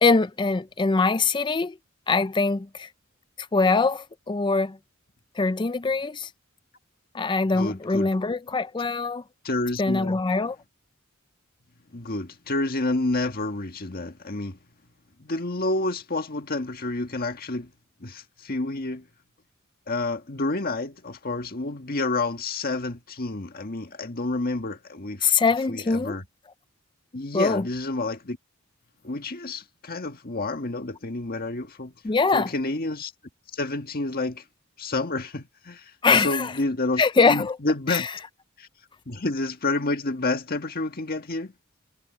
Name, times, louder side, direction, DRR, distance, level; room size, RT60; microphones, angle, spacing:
voice 1, 0.0-1.8 2.1-2.9 3.4-4.8 5.4-6.3 7.1-9.2 9.8-10.6 25.2-26.2 27.3-27.7 32.0-32.5 36.0-36.5 37.0-37.6 37.9-38.1, left 4 dB, 20° left, 0.4 m, -23 dB
voice 2, 7.5-8.1 9.4-10.2 11.9-14.6 15.2-17.7 18.0-19.1 19.9-25.3 25.7-26.2 27.1-28.4 29.0-31.9 32.3-33.1 33.5-34.4 34.8-38.1 38.6-38.7 39.1-41.5, left 2 dB, 45° left, 1.7 m, -29 dB
head